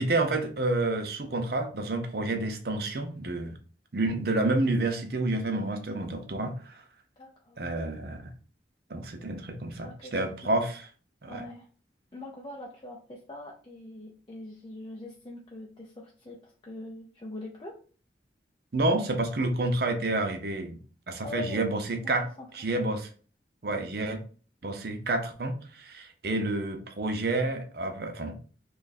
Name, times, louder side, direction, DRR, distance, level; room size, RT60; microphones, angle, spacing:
voice 1, 0.0-3.6 3.9-6.8 7.6-8.3 8.9-10.8 11.2-11.4 18.7-20.8 21.1-22.3 22.5-23.1 23.6-24.2 24.6-28.3, right 2 dB, 60° right, 5 dB, 0.6 m, -29 dB
voice 2, 7.2-7.6 9.8-10.3 11.3-11.7 12.1-17.8 21.2-21.7 22.0-22.9, left 1 dB, 25° left, -2 dB, 0.5 m, -43 dB
3.0 x 2.4 x 4.1 m, 0.40 s
head